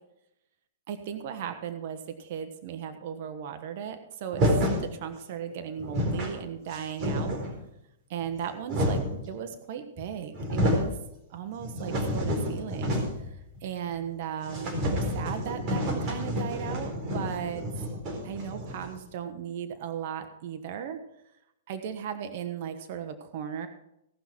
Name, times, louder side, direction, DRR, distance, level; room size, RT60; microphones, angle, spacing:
voice 1, 0.9-7.4 8.1-11.0 11.3-13.0 13.6-17.7 18.2-21.0 21.7-23.7, right 8 dB, 50° right, 8 dB, 1.2 m, -36 dB
sound 1, 4.3-4.9 5.5-5.6 5.8-6.3 6.7-7.6 8.3-9.2 10.0-10.1 10.3-10.9 11.3-13.3 13.6-13.7 14.0-14.1 14.5-19.0, equal, 35° right, 4.2 m, -29 dB
17.5 x 6.0 x 5.9 m, 0.83 s
hypercardioid pair, 145°, 0 cm